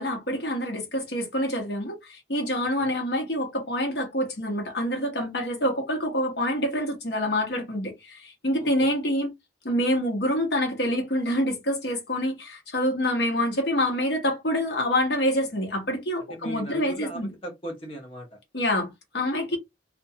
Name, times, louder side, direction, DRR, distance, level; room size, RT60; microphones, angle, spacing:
voice 1, 0.0-9.3 9.6-17.3 18.5-19.6, left 1 dB, 65° left, 1.0 m, -26 dB
voice 2, 8.6-8.9 16.2-18.4 19.5-19.6, right 1 dB, 30° left, 0.8 m, -38 dB
2.5 x 2.2 x 2.7 m
head